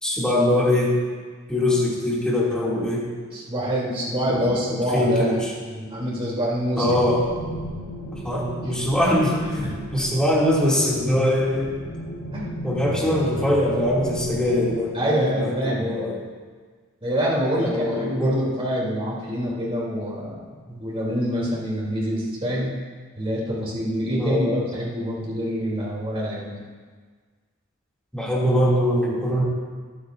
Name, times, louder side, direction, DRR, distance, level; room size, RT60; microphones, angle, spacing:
voice 1, 0.0-0.9 1.5-3.0 4.3-5.5 6.8-7.2 8.2-11.8 12.6-16.2 17.6-18.4 24.2-24.6 28.1-29.4, left 1 dB, 5° left, -6 dB, 2.7 m, -22 dB
voice 2, 3.3-7.0 9.6-9.7 12.3-12.4 14.9-16.0 17.0-20.4 20.7-22.7 23.2-26.5, equal, 25° right, -6 dB, 3.3 m, -26 dB
sound 1, 6.8-14.7, equal, 70° left, 3.7 m, -35 dB
21.0 x 8.7 x 2.7 m, 1.5 s
head